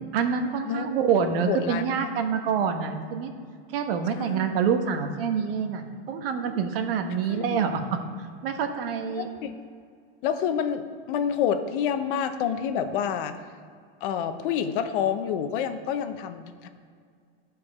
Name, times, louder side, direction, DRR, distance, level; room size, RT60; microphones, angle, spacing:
voice 1, 0.1-3.3 3.7-8.0 8.4-9.3, right 6 dB, 65° right, 6 dB, 1.2 m, -26 dB
voice 2, 1.5-1.8 4.1-4.4 7.3-7.7 9.1-9.5 10.2-13.4 14.0-16.7, left 8 dB, 55° left, 9 dB, 0.8 m, -28 dB
13.5 x 4.7 x 4.9 m, 2.1 s
supercardioid pair, 135°, 31 cm